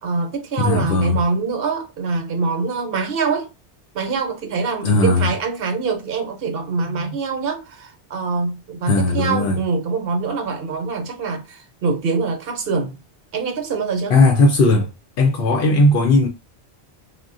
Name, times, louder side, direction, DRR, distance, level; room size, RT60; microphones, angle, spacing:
voice 1, 0.0-3.5 3.9-13.0 13.3-14.2, right 4 dB, 60° right, 0.9 m, -24 dB
voice 2, 0.6-1.2 4.8-5.3 8.9-9.6 14.1-14.9 15.2-16.3, left 2 dB, 65° left, 0.7 m, -16 dB
3.6 x 2.2 x 2.3 m
omnidirectional pair, 1.1 m